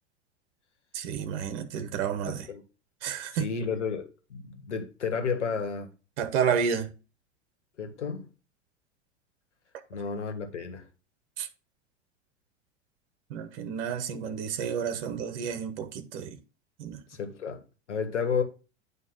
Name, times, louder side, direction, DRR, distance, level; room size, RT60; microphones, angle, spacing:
voice 1, 0.9-2.5 3.0-3.5 6.2-6.9 11.4-11.5 13.3-16.4 16.8-17.0, right 7 dB, 55° right, 1.2 m, -30 dB
voice 2, 2.3-2.6 3.3-5.9 7.8-8.3 9.9-10.8 17.1-17.6 17.9-18.4, left 5 dB, 75° left, 1.6 m, -32 dB
9.5 x 3.2 x 6.1 m
figure-of-eight pair, 90°, 35 cm